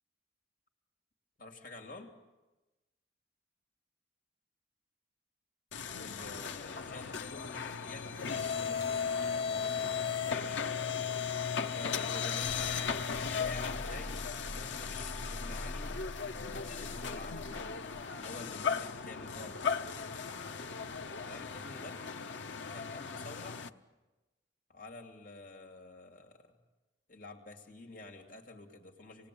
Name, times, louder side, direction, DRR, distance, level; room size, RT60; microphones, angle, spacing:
voice 1, 1.4-2.1 6.0-8.2 8.5-10.8 11.6-12.8 13.2-16.0 16.3-17.7 18.2-19.7 21.3-22.0 22.7-23.6 24.7-26.6 27.1-29.3, left 2 dB, 50° left, 2 dB, 2.7 m, -49 dB
sound 1, 5.7-23.7, left 6 dB, 80° left, 0.9 m, -36 dB
27.5 x 19.5 x 8.6 m, 1.1 s
head